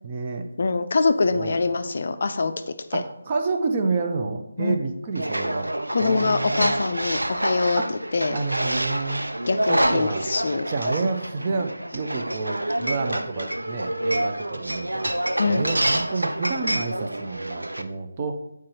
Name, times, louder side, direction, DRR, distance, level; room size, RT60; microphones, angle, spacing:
voice 1, 0.0-0.5 1.3-1.6 2.9-5.7 6.0-6.8 7.8-7.9 8.3-9.2 9.7-10.3 10.7-15.1 15.4-18.3, right 4 dB, 30° right, 5 dB, 0.5 m, -29 dB
voice 2, 0.6-2.5 2.9-3.0 4.6-4.8 5.9-8.4 9.5-10.7 15.4-15.6, left 4 dB, 45° left, 9 dB, 0.4 m, -24 dB
sound 1, 5.1-17.8, right 1 dB, 80° right, 0.4 m, -27 dB
7.4 x 4.7 x 2.9 m, 0.83 s
figure-of-eight pair, 155°, 0 cm